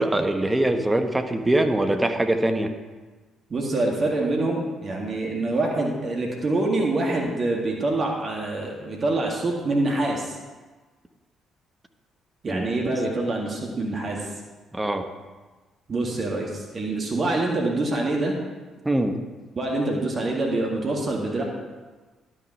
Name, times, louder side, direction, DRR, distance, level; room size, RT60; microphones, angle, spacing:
voice 1, 0.0-2.7 12.5-12.7 14.7-15.1 18.8-19.2, right 1 dB, 15° right, 6 dB, 1.2 m, -23 dB
voice 2, 3.5-10.4 12.4-14.3 15.9-18.3 19.6-21.4, right 2 dB, 40° right, -1 dB, 2.0 m, -25 dB
11.5 x 6.5 x 5.6 m, 1.3 s
figure-of-eight pair, 45°, 0 cm